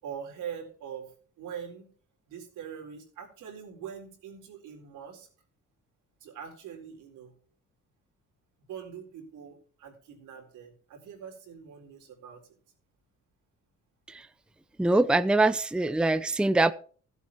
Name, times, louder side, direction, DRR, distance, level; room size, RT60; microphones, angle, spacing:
voice 1, 0.0-1.1 1.4-1.9 2.3-5.3 6.2-7.3 8.7-12.4, right 8 dB, 85° right, 4.0 m, -43 dB
voice 2, 14.8-16.7, right 2 dB, 5° right, 0.6 m, -23 dB
14.5 x 8.2 x 4.5 m
cardioid pair, 90°, 30 cm